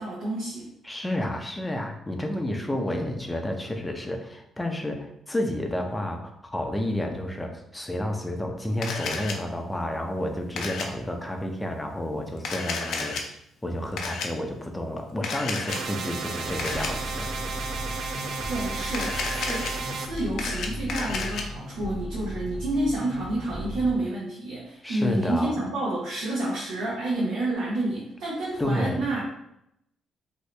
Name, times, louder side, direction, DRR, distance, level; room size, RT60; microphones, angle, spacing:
voice 1, 0.0-0.7 18.5-29.2, right 1 dB, 90° right, -8 dB, 1.0 m, -29 dB
voice 2, 0.8-13.2 13.6-17.3 24.8-25.5 28.6-29.0, left 1 dB, 10° left, 4 dB, 0.5 m, -30 dB
Camera, 8.8-9.3 10.6-10.9 12.4-13.2 14.0-14.3 15.2-15.8 16.6-16.9 18.9-19.7 20.2-21.4, left 4 dB, 75° left, 0.5 m, -31 dB
sound 1, 15.7-20.1, right 4 dB, 70° right, 0.4 m, -33 dB
sound 2, 16.4-23.9, equal, 25° right, 1.3 m, -36 dB
2.7 x 2.7 x 3.2 m, 0.78 s
cardioid pair, 90°, 0 cm